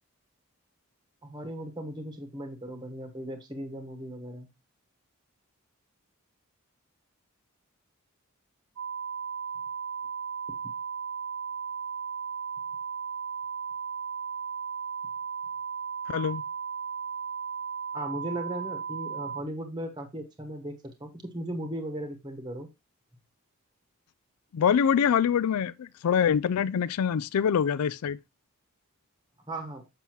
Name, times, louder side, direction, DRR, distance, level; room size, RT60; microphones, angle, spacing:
voice 1, 1.2-4.5 17.9-20.7 21.0-22.7 29.5-29.9, right 1 dB, 20° right, 1.1 m, -37 dB
sound 1, 8.8-19.4, right 6 dB, 75° right, 1.1 m, -35 dB
voice 2, 16.1-16.4 24.5-28.2, left 7 dB, 85° left, 0.4 m, -25 dB
7.5 x 5.5 x 2.9 m
head